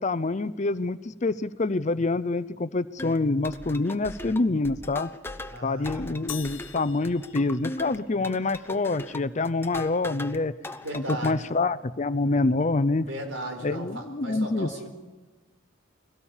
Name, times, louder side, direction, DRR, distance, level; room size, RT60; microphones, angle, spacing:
voice 1, 0.0-5.1 5.6-10.5 10.9-13.1 13.6-14.7, left 3 dB, 35° left, 15 dB, 0.6 m, -26 dB
sound 1, 3.0-10.4 10.6-11.3, left 2 dB, 10° left, 0.9 m, -39 dB
voice 2, 5.5-6.3 10.8-11.4 13.0-14.9, right 1 dB, 80° right, 4 dB, 4.6 m, -36 dB
sound 2, 6.3-8.2, left 12 dB, 80° left, 1.0 m, -43 dB
22.5 x 17.5 x 7.2 m, 1.2 s
head